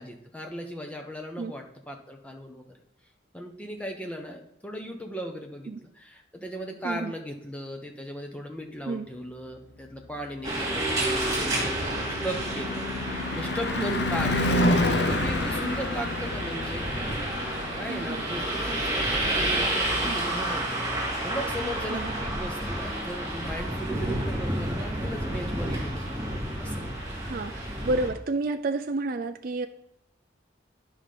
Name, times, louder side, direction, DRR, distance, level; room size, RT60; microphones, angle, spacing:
voice 1, 0.0-2.7 3.3-14.8 15.1-17.1 17.8-26.2 26.6-26.8, equal, 5° left, 2 dB, 1.0 m, -37 dB
sound 1, 10.4-28.1, right 1 dB, 20° right, 2.7 m, -30 dB
Car passing by / Truck / Engine, 10.5-20.7, left 1 dB, 65° left, 0.6 m, -30 dB
voice 2, 13.8-14.1 15.6-15.8 17.9-18.2 20.0-20.2 21.9-22.1 23.9-24.2 27.2-29.7, right 3 dB, 50° right, 7 dB, 0.4 m, -31 dB
9.9 x 5.6 x 5.0 m, 0.77 s
head